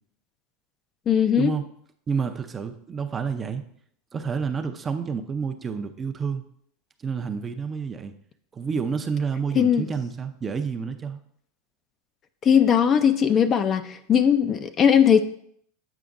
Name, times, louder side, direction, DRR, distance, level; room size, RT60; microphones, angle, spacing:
voice 1, 1.1-1.5 9.6-9.9 12.4-15.2, left 8 dB, 30° left, 10 dB, 0.4 m, -19 dB
voice 2, 2.1-3.6 4.1-6.4 7.0-8.1 8.5-11.2, right 6 dB, 25° right, 7 dB, 0.5 m, -29 dB
8.0 x 5.0 x 2.5 m, 0.67 s
supercardioid pair, 120°, 0 cm